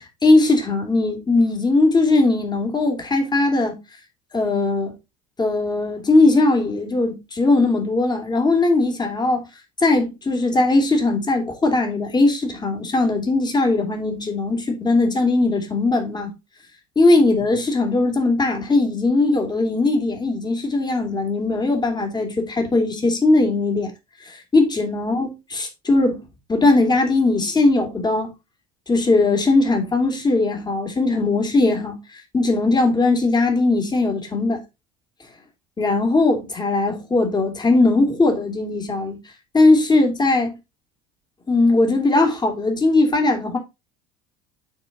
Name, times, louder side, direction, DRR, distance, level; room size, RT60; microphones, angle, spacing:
voice 1, 0.0-3.8 4.3-4.9 5.4-9.4 9.8-16.3 17.0-23.9 24.2-28.3 28.9-34.6 35.8-39.2 39.5-40.5 41.5-43.6, left 2 dB, 20° left, 3.1 m, -19 dB
12.0 x 4.6 x 2.9 m
hypercardioid pair, 70°, 20 cm